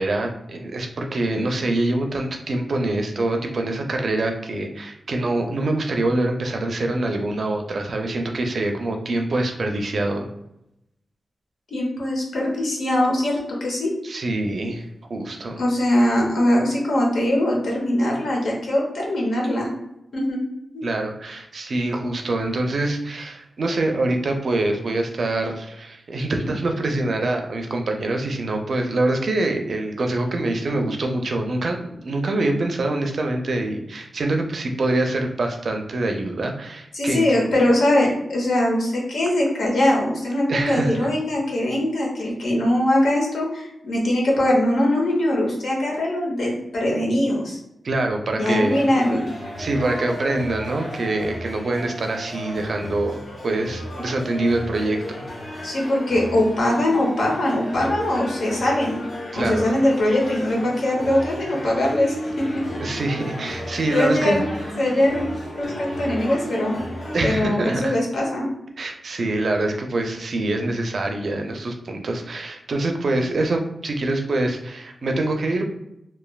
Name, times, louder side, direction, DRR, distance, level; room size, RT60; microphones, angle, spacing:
voice 1, 0.0-10.3 14.0-15.6 20.8-37.2 40.5-41.1 47.8-48.9 49.6-55.2 59.3-59.7 62.8-64.4 67.1-67.9 68.8-75.6, right 2 dB, 60° right, 3 dB, 0.4 m, -25 dB
voice 2, 11.7-13.9 15.6-19.7 20.1-20.4 20.7-20.8 36.9-47.6 48.3-49.2 55.6-59.0 59.3-62.7 63.9-64.4 64.8-65.3 65.5-66.8 67.2-68.5, left 1 dB, 80° left, -2 dB, 0.8 m, -21 dB
sound 1, 48.5-67.4, equal, 50° left, 0.8 m, -33 dB
3.1 x 2.2 x 2.2 m, 0.82 s
wide cardioid pair, 110°, 0 cm